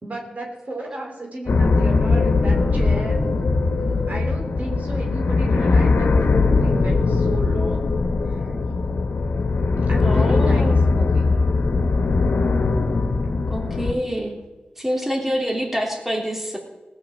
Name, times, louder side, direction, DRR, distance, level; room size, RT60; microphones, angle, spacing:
voice 1, 0.0-3.2 3.7-7.9 8.3-8.5 9.9-11.4, right 1 dB, 50° right, 1 dB, 3.1 m, -33 dB
sound 1, 1.5-13.9, left 3 dB, 80° left, 1.3 m, -20 dB
voice 2, 10.0-10.8 13.5-14.4 14.8-16.6, equal, 10° right, 0 dB, 3.3 m, -26 dB
18.5 x 6.3 x 7.4 m, 1.2 s
cardioid pair, 60°, 3 cm